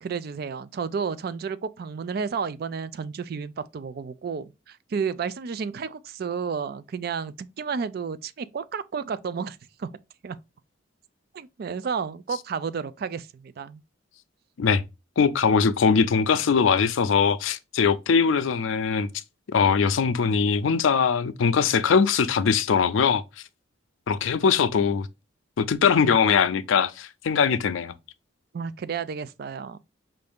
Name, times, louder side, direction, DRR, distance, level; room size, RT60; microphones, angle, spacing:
voice 1, 0.0-9.9 10.2-10.4 11.3-13.8 28.5-29.8, right 6 dB, 50° right, 0.3 m, -32 dB
voice 2, 15.2-19.1 19.5-23.2 24.1-25.1 25.6-27.9, left 6 dB, 75° left, 0.4 m, -21 dB
5.5 x 2.6 x 3.5 m
head